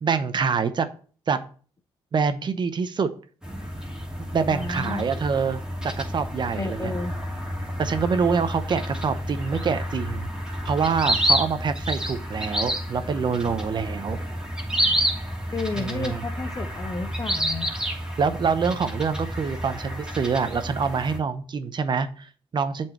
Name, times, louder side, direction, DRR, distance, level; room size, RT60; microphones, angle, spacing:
voice 1, 0.0-0.9 1.3-1.4 2.1-3.1 4.3-5.6 6.0-6.9 7.8-10.3 10.6-14.2 15.8-16.2 18.2-22.9, right 5 dB, 50° right, 10 dB, 0.8 m, -25 dB
sound 1, 3.4-21.2, equal, 10° right, 2.7 m, -29 dB
voice 2, 4.5-5.0 6.6-7.1 15.5-17.7, left 3 dB, 35° left, 10 dB, 0.9 m, -31 dB
7.6 x 4.5 x 6.0 m, 0.41 s
cardioid pair, 90°, 10 cm